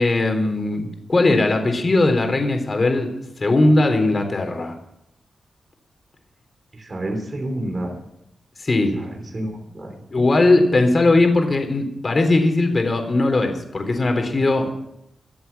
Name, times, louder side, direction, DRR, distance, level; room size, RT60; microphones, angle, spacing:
voice 1, 0.0-3.1 3.4-4.7 8.6-8.9 10.1-14.7, left 2 dB, 35° left, 5 dB, 3.7 m, -19 dB
voice 2, 6.7-8.0 9.0-10.0, right 1 dB, 35° right, 4 dB, 3.2 m, -29 dB
23.5 x 8.0 x 7.0 m, 0.81 s
cardioid pair, 95°, 0 cm